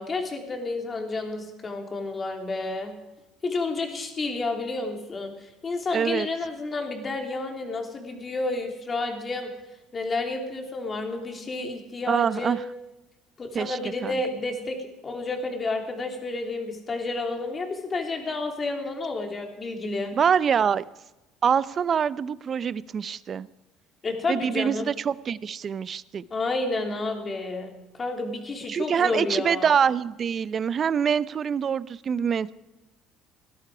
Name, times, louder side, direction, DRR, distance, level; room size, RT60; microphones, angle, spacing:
voice 1, 0.0-2.9 3.4-9.5 9.9-12.6 13.4-20.1 24.0-24.9 26.3-29.7, left 3 dB, 30° left, 3 dB, 3.1 m, -30 dB
voice 2, 5.9-6.3 12.1-12.6 13.5-14.2 20.1-20.8 21.4-23.5 24.3-26.2 28.7-32.5, right 7 dB, 40° right, 18 dB, 0.5 m, -25 dB
17.5 x 12.5 x 4.9 m, 1.0 s
supercardioid pair, 95°, 0 cm